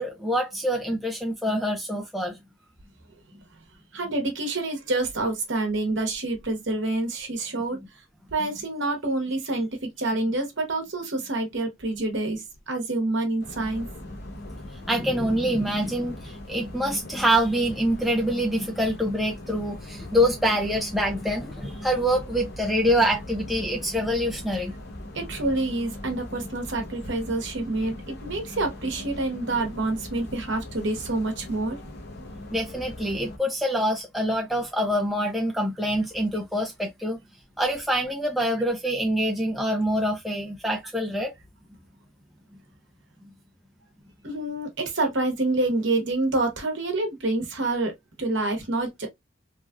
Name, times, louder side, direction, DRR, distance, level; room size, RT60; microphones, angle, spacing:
voice 1, 0.0-2.4 14.8-24.7 32.5-37.2 37.6-41.3, equal, ahead, 0.4 m, -25 dB
voice 2, 3.9-7.8 8.3-13.9 25.1-31.8 44.2-47.9 48.2-49.1, right 2 dB, 55° right, 1.0 m, -27 dB
sound 1, 13.4-33.4, left 1 dB, 50° left, 0.7 m, -40 dB
3.1 x 2.4 x 2.2 m
head